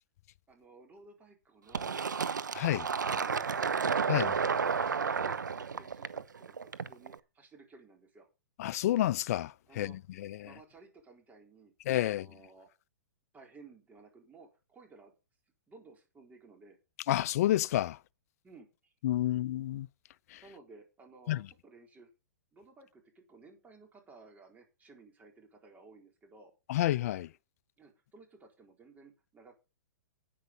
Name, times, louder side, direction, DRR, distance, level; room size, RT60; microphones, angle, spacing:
voice 1, 0.5-2.3 3.1-3.8 4.0-8.3 9.7-10.0 10.4-11.7 12.1-12.7 13.3-15.1 15.7-16.8 18.4-18.9 20.4-22.1 22.5-26.5 27.8-29.6, right 3 dB, 15° right, 4.1 m, -56 dB
Fill (with liquid), 1.7-7.1, right 6 dB, 90° right, 0.9 m, -32 dB
voice 2, 2.6-2.9 4.1-4.3 8.6-9.9 10.2-10.4 11.9-12.3 17.1-18.0 19.0-19.9 21.3-21.4 26.7-27.3, left 13 dB, 55° left, 0.5 m, -29 dB
10.5 x 9.4 x 5.4 m
hypercardioid pair, 120°, 10 cm